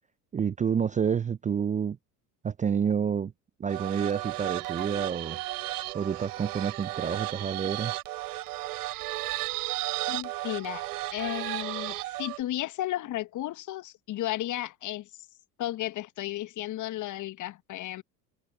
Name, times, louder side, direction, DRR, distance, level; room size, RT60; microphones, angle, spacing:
voice 1, 0.3-2.0 2.4-3.3 3.6-5.4 5.9-7.9, right 7 dB, 15° right, 0.6 m, -29 dB
sound 1, 3.7-12.4, right 18 dB, 70° right, 3.6 m, -34 dB
voice 2, 10.1-15.1 15.6-18.0, left 14 dB, 40° left, 1.3 m, -34 dB
hypercardioid pair, 75°, 47 cm